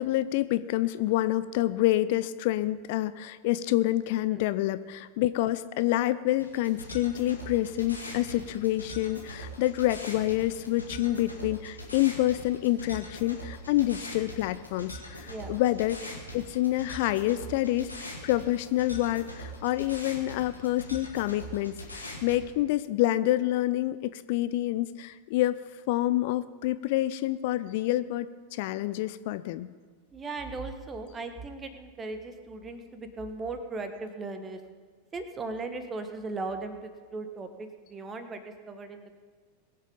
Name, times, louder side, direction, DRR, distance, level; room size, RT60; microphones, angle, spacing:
voice 1, 0.0-25.6 25.9-29.7, left 15 dB, 50° left, 14 dB, 0.4 m, -27 dB
sound 1, 6.4-22.4, equal, 85° left, 2.4 m, -42 dB
voice 2, 30.1-34.6 35.1-39.2, right 3 dB, 20° right, 7 dB, 1.4 m, -38 dB
21.5 x 7.5 x 5.3 m, 1.5 s
figure-of-eight pair, 90°, 0 cm